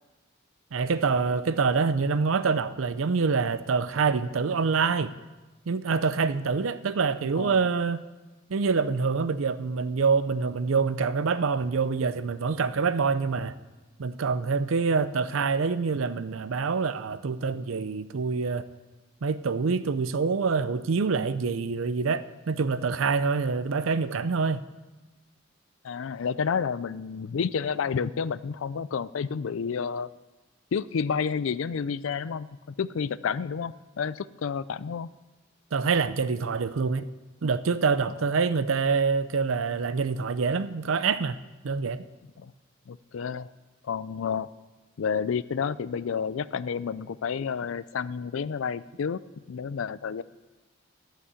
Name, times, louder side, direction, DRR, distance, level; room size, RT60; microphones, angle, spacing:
voice 1, 0.7-5.1 5.7-8.0 8.5-13.5 14.0-18.7 19.2-24.6 35.7-37.1 37.4-41.4 41.6-42.1, right 5 dB, 85° right, 0.5 m, -26 dB
voice 2, 25.8-30.1 30.7-32.5 32.8-35.1 42.4-42.5 42.9-43.5 43.8-44.5 45.0-49.2 49.5-50.2, left 6 dB, 85° left, 0.4 m, -30 dB
12.5 x 5.9 x 8.2 m
head